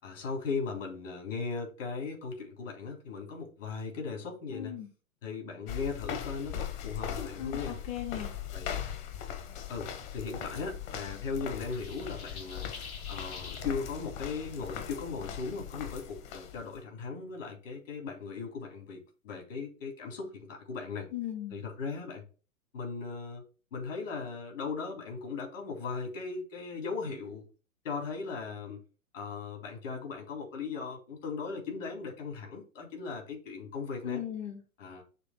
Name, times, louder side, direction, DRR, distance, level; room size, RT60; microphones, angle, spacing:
voice 1, 0.0-4.8 5.2-7.8 8.5-8.7 9.7-12.7 13.1-21.1 21.5-22.2 22.7-23.4 23.7-27.4 27.8-28.8 29.1-34.2 34.8-35.0, left 4 dB, 60° left, 3.7 m, -38 dB
voice 2, 4.5-4.9 7.4-8.4 21.1-21.6 34.0-34.6, left 11 dB, 15° left, 0.7 m, -37 dB
sound 1, 5.7-16.8, left 9 dB, 35° left, 1.3 m, -40 dB
sound 2, 11.7-13.7, left 4 dB, 80° left, 2.8 m, -46 dB
6.7 x 3.4 x 5.9 m
hypercardioid pair, 125°, 42 cm